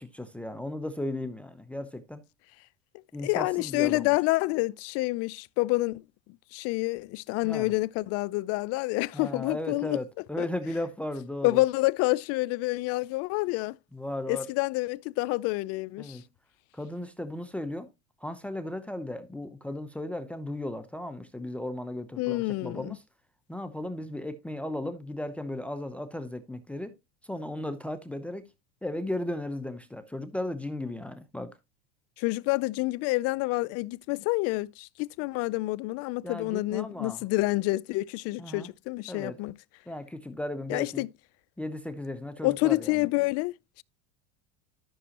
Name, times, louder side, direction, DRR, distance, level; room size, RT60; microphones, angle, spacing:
voice 1, 0.0-2.2 3.1-4.1 7.4-7.7 9.1-11.6 13.9-14.5 16.0-16.2 16.7-17.9 18.2-23.0 23.5-27.0 27.2-28.5 28.8-31.5 36.2-37.2 38.4-38.7 39.1-39.4 39.9-41.1 41.6-43.1, left 1 dB, 5° left, 0.7 m, -36 dB
voice 2, 3.2-6.0 6.5-10.0 10.4-10.5 11.4-13.8 14.3-16.2 22.2-23.0 32.2-39.6 40.7-41.1 42.4-43.8, left 21 dB, 50° left, 0.5 m, -28 dB
12.5 x 6.1 x 2.9 m
supercardioid pair, 125°, 31 cm